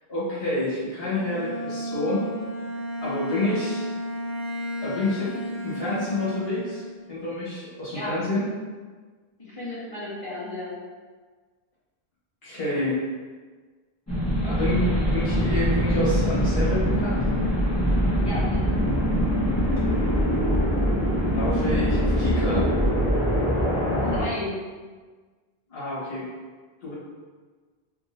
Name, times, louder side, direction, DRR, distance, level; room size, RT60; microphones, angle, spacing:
voice 1, 0.1-2.3 3.0-3.9 4.8-6.8 7.1-8.4 12.4-13.0 14.4-17.2 21.2-22.8 25.7-26.3 26.8-26.9, left 2 dB, 70° left, -9 dB, 1.5 m, -28 dB
Bowed string instrument, 0.9-7.0, equal, 55° left, 1.0 m, -33 dB
voice 2, 9.4-10.8 18.2-19.0 24.0-24.6, left 2 dB, 30° left, -10 dB, 1.3 m, -34 dB
sound 1, 14.1-24.2, equal, 15° left, 1.2 m, -23 dB
3.5 x 3.0 x 2.6 m, 1.4 s
omnidirectional pair, 1.1 m